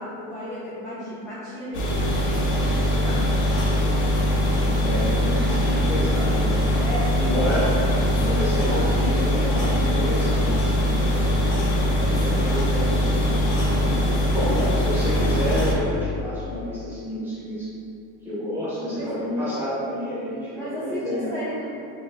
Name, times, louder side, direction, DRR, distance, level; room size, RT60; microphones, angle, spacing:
voice 1, 0.0-2.0 2.7-3.4 5.7-5.9 6.8-8.1 8.4-9.1 9.4-9.8 14.4-14.8 15.0-15.3 19.0-19.1 20.6-21.8, equal, 10° left, -10 dB, 0.5 m, -34 dB
sound 1, 1.7-15.7, left 1 dB, 80° left, 0.9 m, -22 dB
voice 2, 4.6-6.9 7.2-7.7 8.1-11.7 12.1-17.7 18.2-21.3, equal, 5° right, -11 dB, 1.2 m, -30 dB
4.0 x 2.9 x 2.5 m, 2.6 s
cardioid pair, 140°, 36 cm